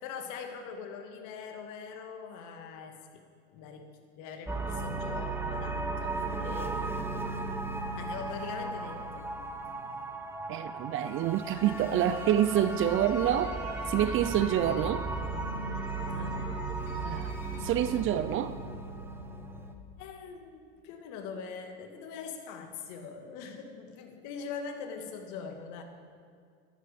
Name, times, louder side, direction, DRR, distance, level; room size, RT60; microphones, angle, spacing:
voice 1, 0.0-3.2 3.5-7.1 7.9-9.3 16.1-16.4 20.0-25.8, left 5 dB, 50° left, 5 dB, 2.2 m, -42 dB
sound 1, 4.5-19.7, right 2 dB, 5° right, 1.2 m, -36 dB
voice 2, 10.5-13.5 13.9-15.1 17.0-18.6, right 11 dB, 35° right, 12 dB, 0.6 m, -27 dB
sound 2, 11.4-18.0, equal, 75° left, 4.1 m, -46 dB
15.0 x 13.0 x 5.3 m, 2.3 s
hypercardioid pair, 105°, 37 cm